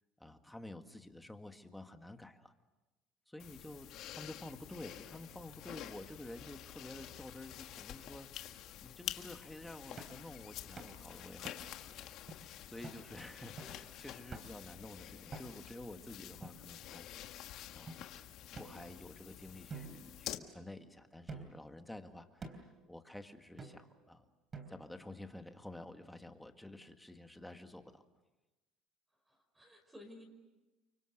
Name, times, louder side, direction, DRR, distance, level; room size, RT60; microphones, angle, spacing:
voice 1, 0.2-2.5 3.3-17.1 17.7-18.0 18.4-24.2 24.7-28.0, left 1 dB, 5° left, 6 dB, 1.9 m, -51 dB
sound 1, 3.4-20.4, left 12 dB, 60° left, 1.6 m, -49 dB
sound 2, 10.0-10.2 10.8-11.0 11.4-11.8 12.3-12.4 12.8-13.0 13.6-13.8 14.3-14.7 15.3-15.8 16.4-17.1 17.9-18.0 18.5-19.2 19.7-20.7 21.3-21.7 22.4-22.8 23.6-24.0 24.5-25.0, right 3 dB, 25° right, 3.6 m, -50 dB
voice 2, 29.1-30.2, left 1 dB, 10° right, 4 dB, 5.5 m, -55 dB
30.0 x 24.5 x 6.7 m, 1.1 s
cardioid pair, 120°, 0 cm